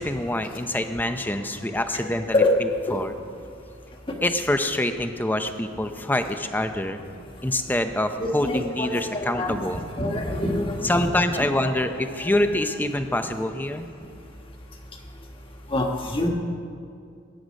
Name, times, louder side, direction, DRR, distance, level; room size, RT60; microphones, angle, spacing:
voice 1, 0.0-3.1 4.2-7.0 7.4-9.8 10.8-13.9, left 1 dB, 10° left, 8 dB, 0.6 m, -26 dB
voice 2, 2.0-2.6 2.9-3.0 8.2-9.6 10.0-11.7 15.7-16.3, left 1 dB, 25° left, 1 dB, 1.5 m, -26 dB
21.0 x 9.7 x 5.2 m, 2.4 s
head